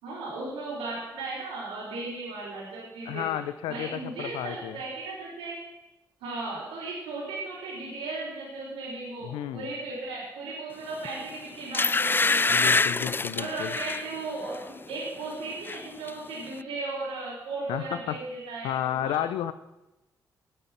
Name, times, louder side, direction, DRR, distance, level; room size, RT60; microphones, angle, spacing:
voice 1, 0.0-3.2 3.7-5.6 6.2-12.9 13.3-19.2, right 3 dB, 85° right, -9 dB, 4.5 m, -36 dB
voice 2, 3.1-4.8 9.2-9.7 12.5-13.7 17.7-18.2 18.6-19.5, left 11 dB, 80° left, 14 dB, 0.6 m, -32 dB
sound 1, 11.0-11.2 11.7-14.1 14.5-14.8 15.1-15.8 16.1-16.2, left 3 dB, 25° left, 0.4 m, -25 dB
19.5 x 6.7 x 5.9 m, 0.99 s
hypercardioid pair, 40°, 9 cm